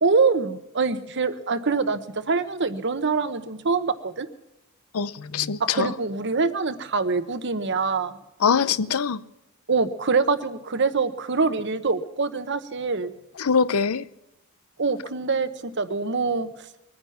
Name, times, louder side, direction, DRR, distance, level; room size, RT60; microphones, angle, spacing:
voice 1, 0.0-4.3 5.6-8.1 9.7-13.1 14.8-16.5, right 4 dB, 55° right, 12 dB, 1.1 m, -24 dB
voice 2, 4.9-5.9 8.4-9.2 13.4-14.0, left 6 dB, 85° left, 17 dB, 0.6 m, -23 dB
22.0 x 9.7 x 5.8 m, 0.91 s
head